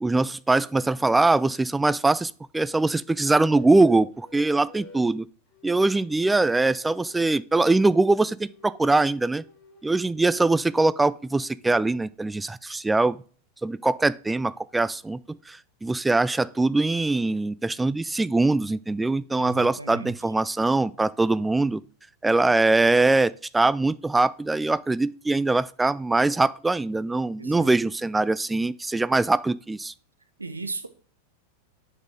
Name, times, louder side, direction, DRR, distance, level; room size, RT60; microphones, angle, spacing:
voice 1, 0.0-5.3 5.6-9.4 9.8-13.2 13.6-21.8 22.2-29.9, right 2 dB, 10° right, 0.3 m, -22 dB
sound 1, 3.5-5.1 5.5-7.4 7.8-10.1 10.5-11.6, left 4 dB, 35° left, 3.4 m, -51 dB
voice 2, 19.4-20.1 27.4-27.7 30.4-30.9, right 3 dB, 80° right, 0.8 m, -36 dB
8.0 x 6.3 x 3.6 m
figure-of-eight pair, 90°, 0 cm